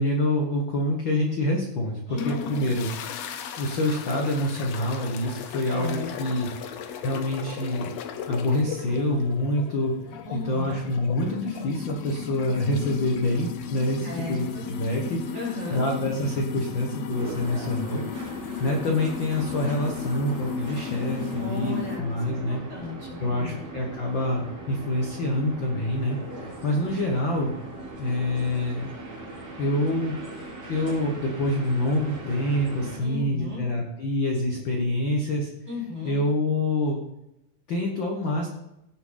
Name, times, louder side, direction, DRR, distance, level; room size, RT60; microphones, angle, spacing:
voice 1, 0.0-2.9 3.6-6.5 7.0-7.9 8.3-9.9 10.3-15.4 15.7-18.0 18.4-22.6 23.2-27.5 28.0-28.9 29.6-30.2 30.7-35.5 36.0-37.0 37.7-38.5, left 1 dB, 55° left, 0 dB, 1.4 m, -26 dB
voice 2, 2.1-2.7 5.7-6.4 10.2-10.8 14.0-14.6 15.3-15.9 21.3-23.6 33.0-33.6 35.7-36.2, left 3 dB, 25° right, -6 dB, 5.1 m, -35 dB
sound 1, 2.2-22.0, left 8 dB, 75° left, 1.6 m, -36 dB
sound 2, 17.1-33.0, right 2 dB, 40° right, 4.8 m, -39 dB
17.0 x 7.4 x 4.1 m, 0.86 s
omnidirectional pair, 4.2 m